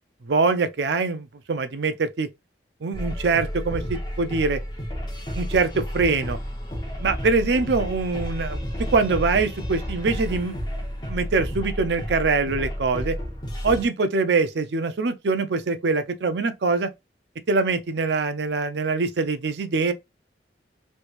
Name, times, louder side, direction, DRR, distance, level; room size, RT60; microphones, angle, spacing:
voice 1, 0.3-2.3 2.8-4.6 5.3-6.4 7.0-8.6 8.9-10.6 11.1-13.2 13.6-16.9 17.5-19.9, right 4 dB, 70° right, 0.5 m, -23 dB
sound 1, 2.9-13.9, equal, 25° left, 0.9 m, -31 dB
3.2 x 3.1 x 2.5 m
head